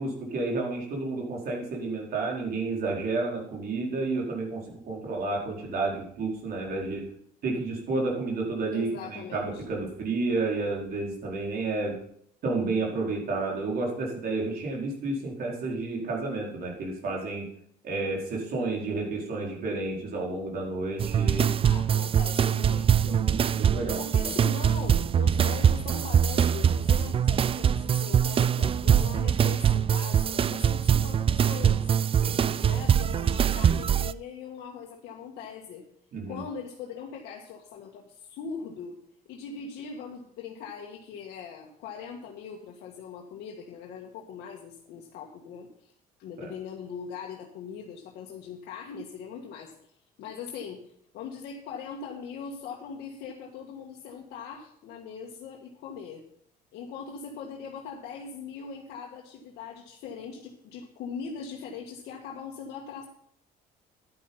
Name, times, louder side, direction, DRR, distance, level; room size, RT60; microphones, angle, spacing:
voice 1, 0.0-7.0 7.4-12.0 12.4-17.5 17.8-21.5 23.0-24.3 32.2-32.6 36.1-36.4 46.4-46.5, right 3 dB, 60° right, -2 dB, 4.7 m, -31 dB
voice 2, 8.7-9.6 21.6-23.2 24.0-31.8 32.6-35.8 36.3-39.0 39.3-45.9 46.2-49.7 50.2-50.8 51.1-56.2 56.7-63.0, left 6 dB, 80° left, -1 dB, 1.8 m, -41 dB
sound 1, 21.0-34.1, right 8 dB, 35° right, 0.4 m, -23 dB
11.0 x 10.0 x 5.6 m, 0.66 s
cardioid pair, 110°, 17 cm